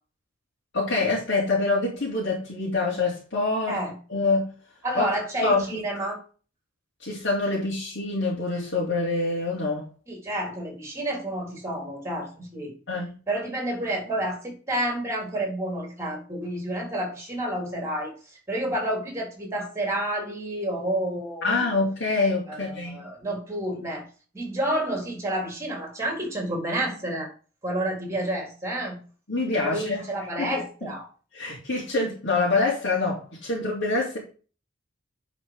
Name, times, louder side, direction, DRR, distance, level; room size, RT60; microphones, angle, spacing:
voice 1, 0.7-3.8 4.1-4.5 4.9-5.1 5.4-5.8 7.0-9.8 12.9-13.1 21.4-23.0 29.3-30.0 30.4-30.9 31.3-34.2, left 3 dB, 65° left, -5 dB, 3.1 m, -26 dB
voice 2, 4.8-6.2 10.1-12.7 13.3-18.1 18.5-21.7 22.5-24.0 24.3-27.3 27.6-29.0 29.6-31.1, right 1 dB, 15° right, 1 dB, 4.0 m, -29 dB
10.5 x 5.0 x 5.0 m, 0.36 s
head